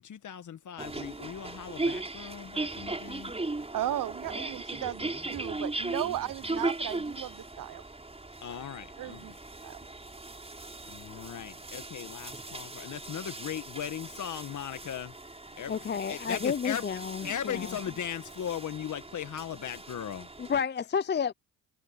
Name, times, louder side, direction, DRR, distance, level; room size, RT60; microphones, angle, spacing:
voice 1, 0.0-3.3 8.4-9.3 10.8-15.1 15.6-16.8 17.2-20.3, left 9 dB, 50° left, 1.7 m, -38 dB
sound 1, 0.8-20.6, right 2 dB, 15° right, 6.8 m, -38 dB
voice 2, 3.7-7.8 9.0-9.3 9.6-9.8, right 12 dB, 60° right, 1.0 m, -35 dB
voice 3, 15.7-17.8 20.4-21.3, left 7 dB, 30° left, 0.6 m, -31 dB
supercardioid pair, 80°, 38 cm